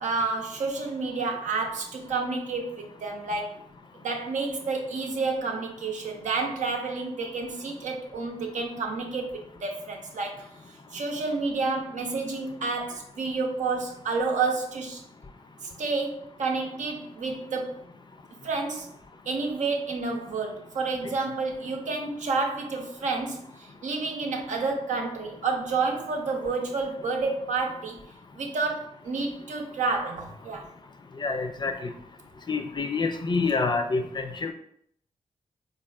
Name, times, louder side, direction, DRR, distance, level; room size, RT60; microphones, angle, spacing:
voice 1, 0.0-3.6 4.0-10.5 10.9-15.0 15.6-17.7 18.4-18.9 19.3-23.4 23.8-28.0 28.3-30.7, right 4 dB, 75° right, 1 dB, 0.6 m, -30 dB
voice 2, 31.2-31.9 32.5-34.5, left 4 dB, 35° left, 6 dB, 0.4 m, -27 dB
3.3 x 2.3 x 2.3 m, 0.67 s
cardioid pair, 45°, 13 cm